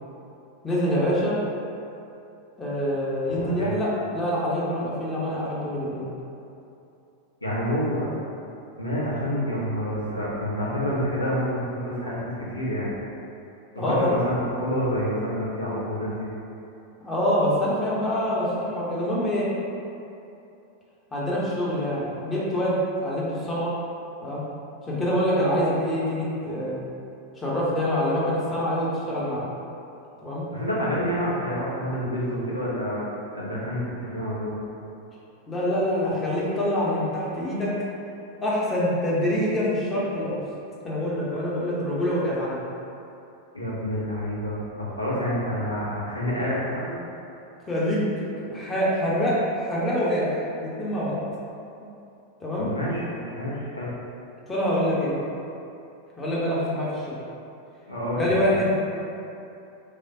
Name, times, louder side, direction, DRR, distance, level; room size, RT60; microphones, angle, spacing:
voice 1, 0.6-1.4 2.6-6.0 13.8-14.1 17.0-18.5 18.7-19.5 21.1-23.7 24.2-24.4 24.9-26.8 27.4-29.5 30.2-30.4 35.5-37.7 38.4-40.4 40.8-42.6 47.7-51.2 51.8-51.9 52.4-52.7 54.5-55.1 56.2-57.1 58.2-58.7, equal, 15° left, -7 dB, 0.9 m, -25 dB
voice 2, 3.3-3.7 7.4-8.1 8.8-12.2 12.5-12.9 13.7-16.3 30.5-33.0 33.3-34.6 43.5-46.9 52.6-53.0 53.3-53.9 57.9-58.3, equal, 85° left, -7 dB, 0.8 m, -28 dB
3.4 x 3.2 x 2.7 m, 2.7 s
figure-of-eight pair, 90°, 0 cm